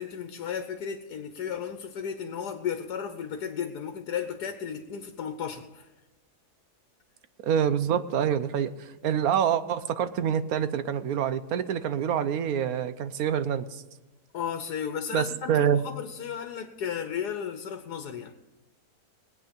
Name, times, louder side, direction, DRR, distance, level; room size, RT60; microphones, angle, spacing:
voice 1, 0.0-5.9 14.3-18.3, left 8 dB, 90° left, 8 dB, 1.4 m, -34 dB
voice 2, 7.4-13.8 15.1-15.8, right 8 dB, 70° right, 12 dB, 1.2 m, -26 dB
21.0 x 8.6 x 5.2 m, 1.0 s
omnidirectional pair, 1.7 m